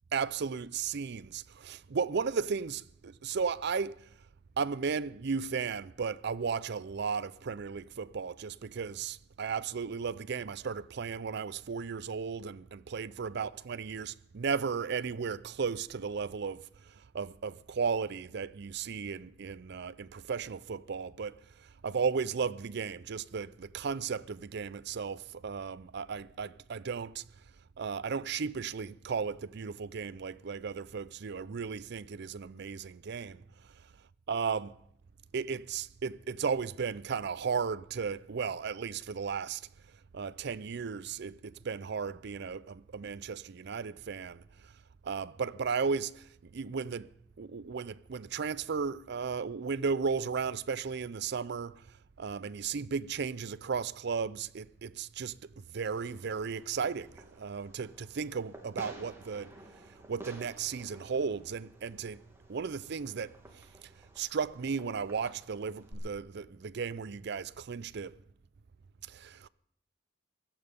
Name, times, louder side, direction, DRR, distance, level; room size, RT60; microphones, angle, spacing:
voice 1, 0.1-4.1 4.6-27.2 27.8-33.4 34.3-34.8 35.3-39.6 40.1-44.7 45.0-47.1 47.4-51.8 52.2-59.5 60.1-62.2 62.5-63.7 64.2-68.1 69.1-69.5, right 5 dB, 60° right, 0.5 m, -35 dB
Fireworks, 55.9-65.9, right 1 dB, 15° right, 2.4 m, -53 dB
17.0 x 13.0 x 5.3 m
head